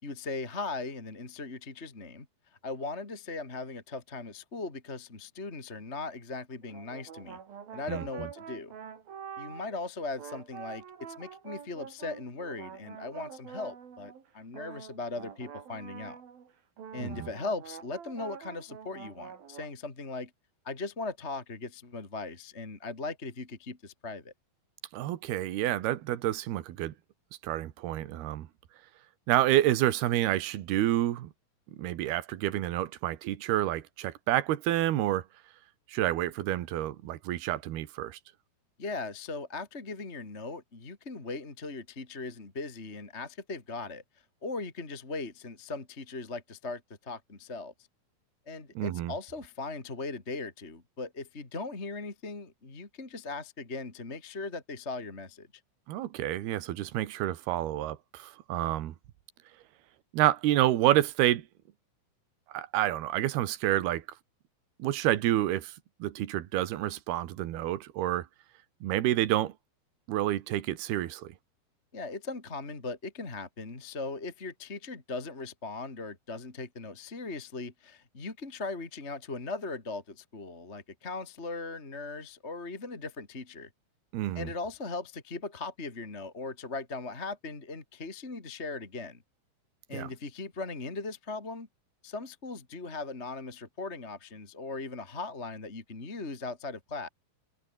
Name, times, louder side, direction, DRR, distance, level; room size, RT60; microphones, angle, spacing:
voice 1, 0.0-2.3 2.6-7.4 7.7-8.7 9.4-16.2 16.9-20.3 20.6-24.3 38.8-44.0 44.4-47.7 48.5-55.5 71.9-83.7 84.3-89.2 89.9-91.7 92.0-97.1, left 3 dB, 20° left, 2.8 m, -39 dB
sound 1, 6.6-9.8 10.2-16.5 16.8-19.7, right 7 dB, 65° right, 5.0 m, -46 dB
voice 2, 24.9-26.9 27.4-28.5 29.3-31.3 31.8-35.2 35.9-38.2 48.8-49.1 55.9-58.9 60.1-61.4 62.5-64.0 64.8-65.7 66.0-68.3 68.8-69.5 70.1-71.3 84.1-84.5 89.9-90.1, right 14 dB, 85° right, 3.4 m, -28 dB
omnidirectional pair, 4.5 m